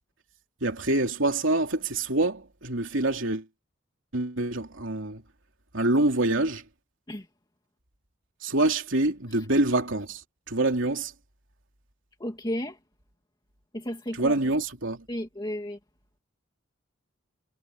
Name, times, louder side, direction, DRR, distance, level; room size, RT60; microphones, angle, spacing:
voice 1, 0.6-3.5 4.1-5.2 5.7-6.6 8.4-11.1 14.1-15.1, right 2 dB, 70° right, 3.6 m, -26 dB
voice 2, 12.2-12.8 13.7-14.4 15.1-15.8, equal, 20° left, 2.3 m, -33 dB
head